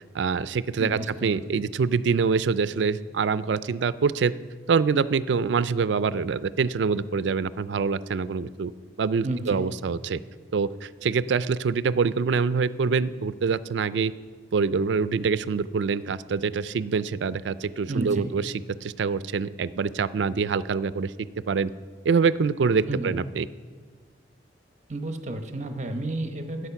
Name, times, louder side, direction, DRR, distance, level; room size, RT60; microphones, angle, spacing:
voice 1, 0.0-4.3 4.7-8.7 9.0-10.2 10.5-14.1 14.5-18.5 18.8-21.1 21.5-21.7 22.0-23.5, right 5 dB, 80° right, 16 dB, 0.4 m, -25 dB
voice 2, 0.8-1.7 9.2-9.6 17.9-18.3 22.9-23.1 24.9-26.7, right 2 dB, 40° right, 6 dB, 0.9 m, -31 dB
12.5 x 8.3 x 5.8 m, 1.5 s
head